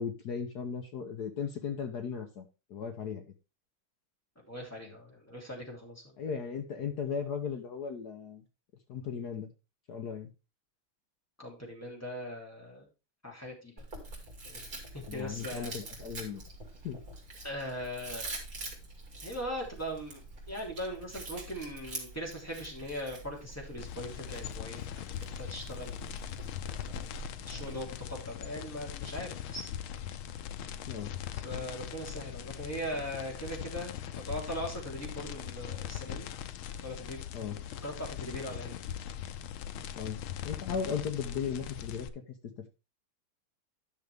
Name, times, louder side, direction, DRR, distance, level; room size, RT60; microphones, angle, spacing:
voice 1, 0.0-2.4 2.7-3.2 6.2-8.4 8.9-9.5 9.9-10.3 15.1-16.4 16.8-17.0 30.9-31.1 37.3-37.6 40.0-42.2, left 6 dB, 60° left, 5 dB, 1.4 m, -36 dB
voice 2, 4.5-6.1 11.4-12.9 13.2-13.8 14.4-14.6 14.9-15.7 17.4-18.2 19.2-20.2 20.5-26.2 27.4-29.7 31.3-36.3 36.8-37.2 37.8-38.7, equal, 5° left, -3 dB, 3.3 m, -40 dB
Chewing mastication, 13.8-27.8, right 2 dB, 45° right, 3.1 m, -45 dB
sound 1, 23.8-42.1, left 10 dB, 85° left, 1.6 m, -41 dB
10.5 x 6.4 x 3.5 m, 0.29 s
omnidirectional pair, 2.2 m